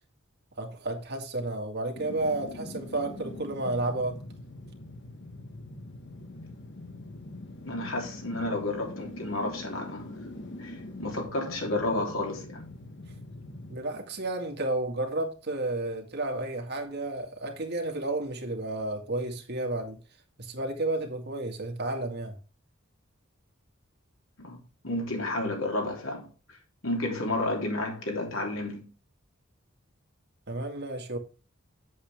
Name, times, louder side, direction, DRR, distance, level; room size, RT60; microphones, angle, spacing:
voice 1, 0.6-4.2 13.7-20.0 20.4-22.4 30.5-31.2, right 2 dB, 55° right, 2.1 m, -32 dB
sound 1, 1.9-15.0 15.3-15.4, left 1 dB, 60° left, 1.2 m, -43 dB
voice 2, 7.6-10.1 10.6-12.6 24.4-26.6 26.8-28.9, left 2 dB, 90° left, 3.3 m, -31 dB
8.5 x 7.7 x 3.5 m
head